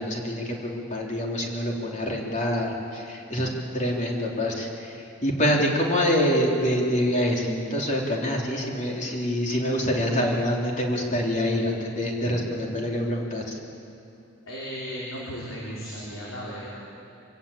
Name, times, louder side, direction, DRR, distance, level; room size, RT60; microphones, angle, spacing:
voice 1, 0.0-4.7 4.9-13.6, equal, 40° left, -1 dB, 3.6 m, -26 dB
voice 2, 14.5-16.7, equal, 75° left, -6 dB, 4.7 m, -35 dB
25.0 x 16.0 x 8.8 m, 2.8 s
head